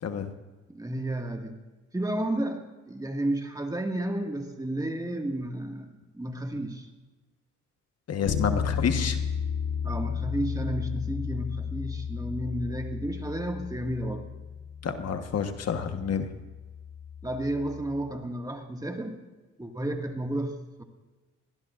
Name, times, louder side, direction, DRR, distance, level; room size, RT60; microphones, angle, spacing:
voice 1, 0.7-1.6 1.9-5.9 6.1-6.9 9.8-14.2 17.2-19.2 19.6-20.8, right 1 dB, 10° right, 3 dB, 2.0 m, -32 dB
voice 2, 8.1-9.2 14.8-16.3, left 6 dB, 55° left, 7 dB, 1.4 m, -29 dB
Bass guitar, 8.3-18.1, left 7 dB, 85° left, 1.4 m, -34 dB
22.0 x 18.0 x 2.6 m, 1.2 s
cardioid pair, 90°, 30 cm